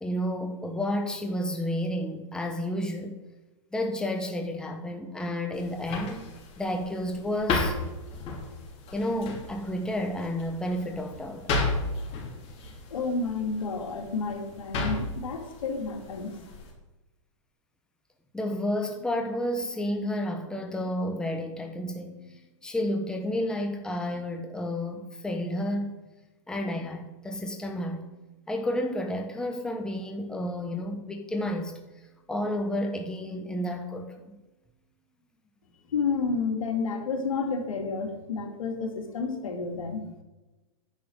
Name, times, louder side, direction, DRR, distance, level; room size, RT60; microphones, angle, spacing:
voice 1, 0.0-3.2 3.7-6.2 6.6-7.7 8.9-11.5 18.3-26.0 26.5-28.1 28.5-31.7 32.3-34.4, left 1 dB, 5° left, 1.1 m, -31 dB
sound 1, 5.5-16.7, left 3 dB, 35° left, 3.4 m, -34 dB
voice 2, 12.9-16.4 35.9-40.1, left 4 dB, 90° left, 2.4 m, -30 dB
10.5 x 6.0 x 6.5 m
hypercardioid pair, 135°, 17 cm